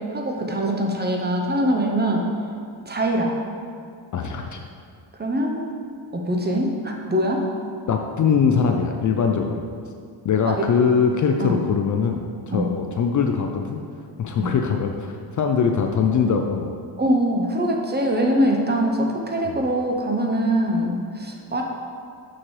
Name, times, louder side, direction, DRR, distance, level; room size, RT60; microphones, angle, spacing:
voice 1, 0.0-2.3 2.9-3.4 5.2-5.6 6.1-7.5 10.5-10.7 11.4-11.6 12.5-12.7 14.4-14.5 17.0-21.6, right 1 dB, 20° right, 1 dB, 0.7 m, -23 dB
voice 2, 4.1-4.6 7.9-9.6 10.2-13.8 14.2-16.7 19.5-19.6, left 6 dB, 45° left, 4 dB, 0.4 m, -22 dB
6.3 x 6.0 x 3.2 m, 2.2 s
cardioid pair, 105°, 46 cm